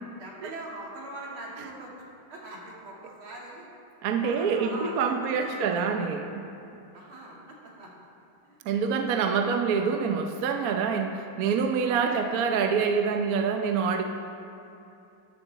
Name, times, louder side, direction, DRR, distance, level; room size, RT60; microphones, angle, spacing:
voice 1, 0.2-3.7 4.2-5.8 6.9-7.4 7.8-7.9 8.4-8.9 9.3-9.4 12.1-12.3, right 1 dB, 85° right, -4 dB, 3.2 m, -42 dB
voice 2, 4.0-6.4 8.6-14.1, right 6 dB, 60° right, 5 dB, 1.1 m, -26 dB
14.0 x 11.0 x 4.1 m, 2.8 s
omnidirectional pair, 2.2 m